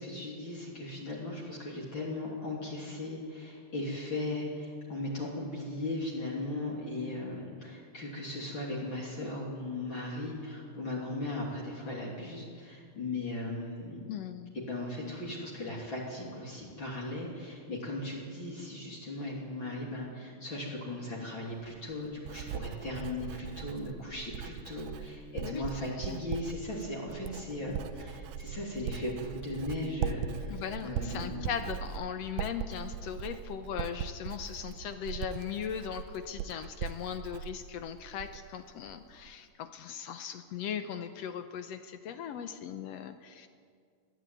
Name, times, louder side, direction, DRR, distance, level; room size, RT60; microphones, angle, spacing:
voice 1, 0.0-14.1 14.5-30.5 30.8-31.5, left 2 dB, 35° left, -4 dB, 3.6 m, -37 dB
voice 2, 14.1-14.5 25.4-25.7 26.1-26.2 30.5-43.5, left 8 dB, 75° left, 9 dB, 1.6 m, -38 dB
Writing, 21.5-38.6 38.9-39.3, right 9 dB, 75° right, 2.0 m, -40 dB
21.0 x 13.5 x 9.2 m, 2.1 s
omnidirectional pair, 3.7 m